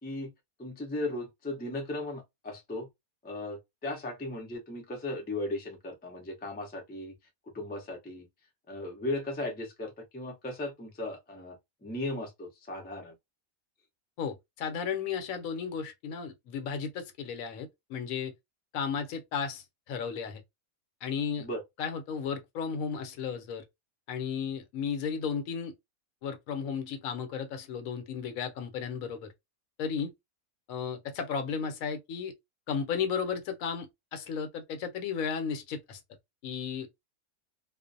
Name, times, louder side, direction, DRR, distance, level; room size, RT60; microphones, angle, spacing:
voice 1, 0.6-2.9 3.2-7.1 7.5-8.3 8.7-13.1 21.4-21.6, left 2 dB, 15° left, 0.3 m, -37 dB
voice 2, 14.2-18.3 18.7-20.4 21.0-21.5 21.8-23.6 24.1-25.7 26.2-29.3 29.8-30.1 30.7-32.3 32.7-36.0 36.4-36.9, left 6 dB, 75° left, 1.0 m, -34 dB
2.5 x 2.0 x 2.5 m
omnidirectional pair, 1.5 m